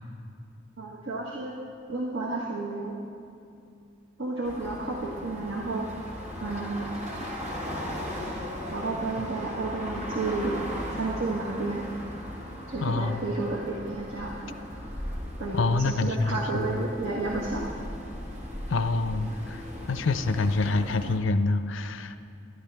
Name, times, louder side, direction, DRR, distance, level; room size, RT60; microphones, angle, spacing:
voice 1, 0.8-1.5 1.9-3.0 4.2-5.9 6.4-6.9 8.7-10.6 10.9-11.8 12.7-14.6 15.4-17.7, right 2 dB, 80° right, -3 dB, 1.5 m, -31 dB
sound 1, 4.4-21.2, equal, 35° right, 1.5 m, -38 dB
voice 2, 12.8-13.3 15.5-16.8 18.7-19.6 19.9-22.2, left 3 dB, 70° left, 11 dB, 0.5 m, -26 dB
21.0 x 12.5 x 3.4 m, 2.5 s
head